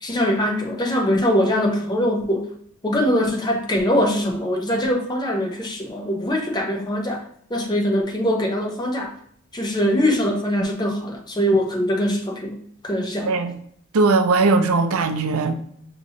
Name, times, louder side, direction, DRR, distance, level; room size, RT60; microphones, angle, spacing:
voice 1, 0.0-2.5 2.8-7.2 7.5-9.1 9.5-12.6 12.8-13.3, equal, 20° left, 1 dB, 0.6 m, -22 dB
voice 2, 13.2-13.6 13.9-15.5, right 3 dB, 85° right, 6 dB, 0.5 m, -19 dB
6.0 x 2.7 x 2.8 m, 0.66 s
head